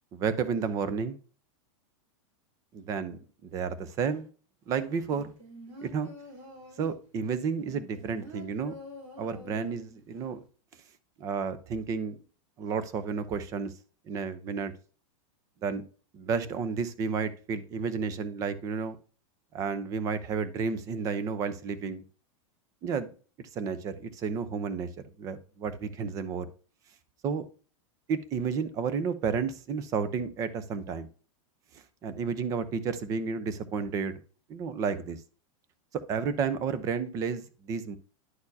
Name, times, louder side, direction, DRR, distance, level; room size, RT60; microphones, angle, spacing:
voice 1, 0.1-1.2 2.7-4.3 4.7-5.3 5.8-6.1 6.8-8.7 9.2-10.4 11.2-12.2 12.6-13.7 14.1-14.7 15.6-15.8 16.1-19.0 19.5-22.0 22.8-23.1 23.4-24.9 25.2-26.5 27.2-27.5 28.1-31.1 32.0-34.2 34.5-35.2 35.9-38.0, right 5 dB, 20° right, 0.6 m, -31 dB
sound 1, 5.1-7.0 7.6-10.0 10.4-10.5, left 1 dB, 65° right, 4.1 m, -47 dB
11.0 x 4.3 x 2.7 m
supercardioid pair, 170°, 17 cm